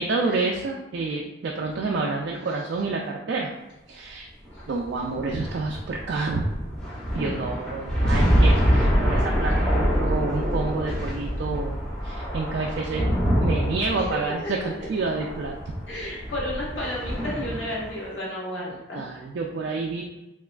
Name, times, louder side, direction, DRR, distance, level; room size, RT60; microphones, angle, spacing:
voice 1, 0.0-3.5 3.9-4.3 4.7-6.5 7.1-11.8 12.0-13.1 13.4-15.6 18.7-20.0, right 3 dB, 65° right, 0 dB, 0.3 m, -28 dB
sound 1, 4.4-18.0, equal, 5° left, 0.7 m, -25 dB
voice 2, 15.9-19.0, left 1 dB, 80° left, -6 dB, 1.1 m, -32 dB
3.3 x 2.9 x 2.3 m, 1.0 s
head